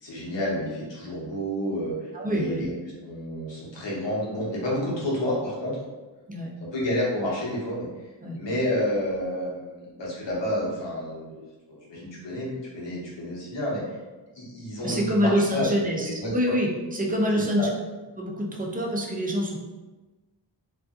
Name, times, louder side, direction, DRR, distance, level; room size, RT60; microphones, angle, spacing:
voice 1, 0.0-2.7 3.0-5.8 6.7-7.9 8.3-11.4 11.7-13.8 14.4-16.5 17.3-17.7, equal, 80° left, -6 dB, 1.0 m, -30 dB
voice 2, 2.1-2.6 6.3-6.5 8.2-8.4 14.8-17.7 18.2-19.6, equal, 20° right, -1 dB, 0.5 m, -26 dB
2.6 x 2.4 x 2.4 m, 1.2 s
wide cardioid pair, 65°, 43 cm